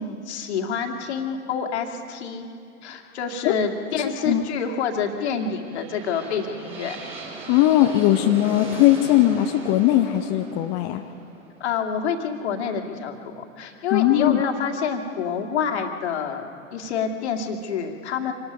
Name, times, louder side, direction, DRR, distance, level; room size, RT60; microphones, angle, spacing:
voice 1, 0.0-2.5 2.8-7.0 11.6-16.4 16.7-18.3, left 6 dB, 55° left, 4 dB, 2.1 m, -27 dB
sound 1, 5.1-13.0, right 3 dB, 15° right, 4.8 m, -39 dB
voice 2, 7.5-11.0 13.9-14.4, left 13 dB, 30° left, 5 dB, 0.7 m, -19 dB
26.0 x 19.0 x 5.3 m, 2.4 s
figure-of-eight pair, 100°, 40 cm